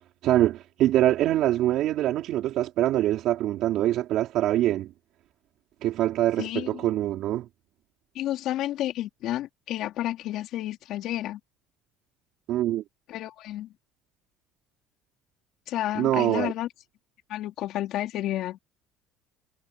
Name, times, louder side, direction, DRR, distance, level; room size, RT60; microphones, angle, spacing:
voice 1, 0.2-4.9 5.8-7.4 12.5-12.8 15.9-16.5, right 13 dB, 55° right, 4.6 m, -24 dB
voice 2, 6.4-6.9 8.1-11.4 13.1-13.7 15.7-16.7 17.3-18.6, left 13 dB, 55° left, 4.3 m, -31 dB
cardioid pair, 155°, 0 cm